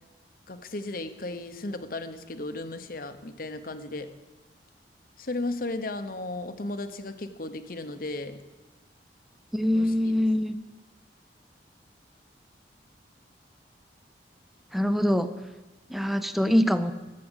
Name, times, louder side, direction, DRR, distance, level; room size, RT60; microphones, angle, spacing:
voice 1, 0.5-4.1 5.2-8.4 9.7-10.1, left 2 dB, 55° left, 10 dB, 1.0 m, -35 dB
voice 2, 9.5-10.6 14.7-15.3 15.9-16.9, equal, ahead, 11 dB, 0.6 m, -24 dB
14.0 x 7.7 x 8.0 m, 1.2 s
head